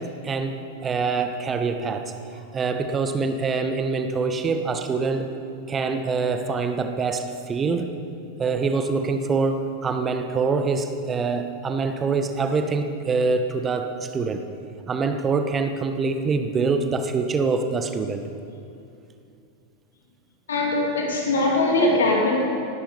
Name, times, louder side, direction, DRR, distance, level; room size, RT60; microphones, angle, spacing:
voice 1, 0.0-2.1 2.5-5.3 5.7-7.9 8.4-14.4 14.9-18.3, right 4 dB, 20° right, 7 dB, 1.2 m, -25 dB
voice 2, 20.5-22.4, left 2 dB, 65° left, 0 dB, 2.6 m, -21 dB
18.0 x 12.5 x 5.4 m, 2.6 s
figure-of-eight pair, 90°, 0 cm